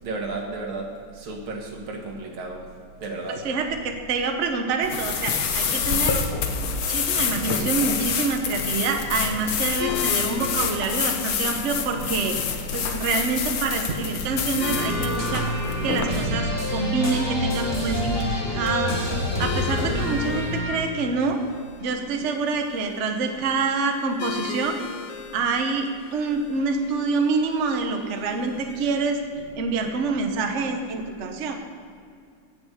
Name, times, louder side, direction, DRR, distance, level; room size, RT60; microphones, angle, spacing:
voice 1, 0.0-2.7 3.0-3.4 5.9-6.2, right 3 dB, 90° right, 2 dB, 2.4 m, -33 dB
voice 2, 3.3-6.2 6.9-12.4 12.7-15.5 15.8-19.0 19.4-21.4 21.8-24.8 25.3-29.2 29.6-31.5, right 4 dB, 45° right, 4 dB, 1.2 m, -26 dB
sound 1, 4.8-16.1, left 6 dB, 85° left, 1.8 m, -27 dB
sound 2, 9.8-28.9, left 10 dB, 65° left, 1.2 m, -39 dB
sound 3, 14.6-20.7, left 1 dB, 10° left, 2.0 m, -27 dB
16.5 x 6.1 x 6.6 m, 2.3 s
omnidirectional pair, 2.2 m